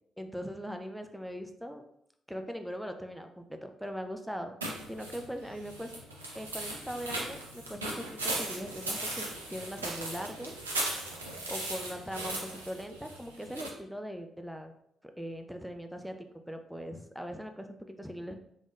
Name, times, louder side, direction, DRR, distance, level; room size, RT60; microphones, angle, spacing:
voice 1, 0.2-1.8 2.3-4.6 4.9-5.9 6.3-10.5 11.5-14.7 15.2-18.4, equal, ahead, 6 dB, 0.4 m, -40 dB
sound 1, 4.6-13.7, right 1 dB, 85° right, 0.5 m, -38 dB
3.5 x 3.5 x 2.5 m, 0.73 s
figure-of-eight pair, 40°, 0 cm